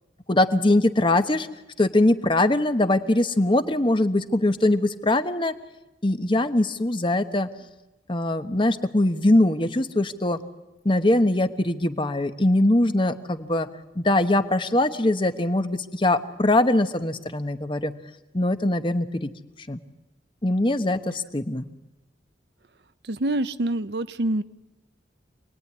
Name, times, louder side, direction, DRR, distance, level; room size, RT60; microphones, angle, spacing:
voice 1, 0.3-1.5 1.8-5.5 6.0-7.5 8.1-10.4 10.8-13.7 14.0-17.9 18.3-19.3 19.7-19.8 20.4-21.7, left 1 dB, 30° left, 9 dB, 1.1 m, -22 dB
voice 2, 23.0-24.4, right 1 dB, 65° right, 12 dB, 0.8 m, -26 dB
27.5 x 19.5 x 9.7 m, 1.0 s
head